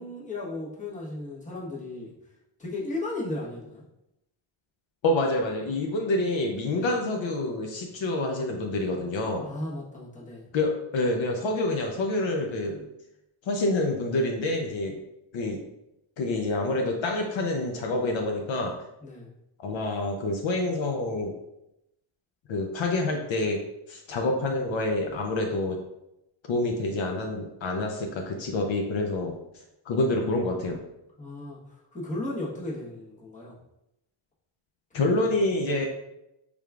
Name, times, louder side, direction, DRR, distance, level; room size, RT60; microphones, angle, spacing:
voice 1, 0.0-2.1 2.6-3.8 6.7-6.9 9.4-10.5 19.0-19.3 31.2-33.5 34.9-35.2 35.8-35.9, left 2 dB, 15° left, -6 dB, 1.1 m, -35 dB
voice 2, 5.0-9.5 10.5-12.9 13.4-15.0 15.3-15.6 16.2-18.8 19.6-21.3 22.5-23.6 23.9-25.8 26.5-29.3 29.9-30.8 34.9-35.9, left 2 dB, 65° left, 1 dB, 0.7 m, -27 dB
4.8 x 3.5 x 2.3 m, 0.87 s
wide cardioid pair, 125°, 49 cm